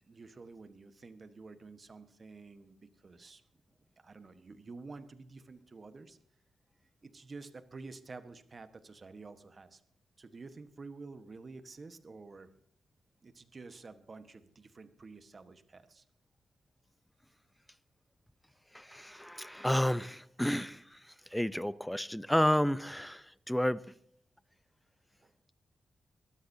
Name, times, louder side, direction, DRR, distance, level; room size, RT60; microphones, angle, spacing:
voice 1, 0.1-2.8 3.0-3.4 4.0-6.2 7.0-9.8 10.2-12.5 13.2-16.0 25.2-25.3, right 3 dB, 40° right, 1.3 m, -50 dB
voice 2, 18.7-21.0 21.3-23.8, equal, 5° left, 0.6 m, -31 dB
24.5 x 13.0 x 2.8 m
cardioid pair, 95°, 0 cm